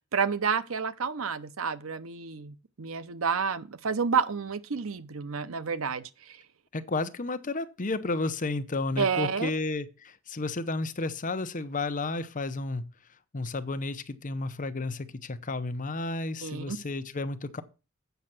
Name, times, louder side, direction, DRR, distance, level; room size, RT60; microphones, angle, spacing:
voice 1, 0.1-6.4 9.0-9.5 16.4-16.8, right 5 dB, 85° right, 0.7 m, -30 dB
voice 2, 6.7-12.8 13.3-17.6, left 2 dB, 40° left, 0.8 m, -32 dB
8.1 x 6.5 x 6.0 m
head